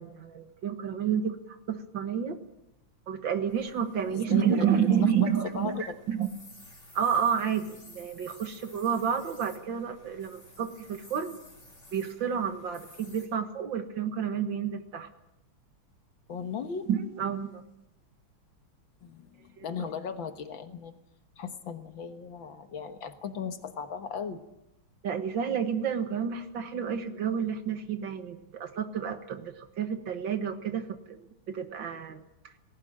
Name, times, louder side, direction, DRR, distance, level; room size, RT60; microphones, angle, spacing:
voice 1, 0.0-2.4 3.1-6.3 6.9-11.4 11.9-15.1 16.9-17.6 19.6-19.9 25.0-31.2 31.5-32.3, right 7 dB, 60° right, 8 dB, 2.1 m, -30 dB
sound 1, 3.5-13.3, left 1 dB, 35° left, 5.5 m, -54 dB
voice 2, 4.1-4.9 5.2-5.3 5.5-5.8 16.3-16.9 19.0-20.9 21.4-24.4, left 6 dB, 65° left, 8 dB, 2.0 m, -37 dB
18.5 x 17.5 x 8.8 m, 0.87 s
omnidirectional pair, 2.4 m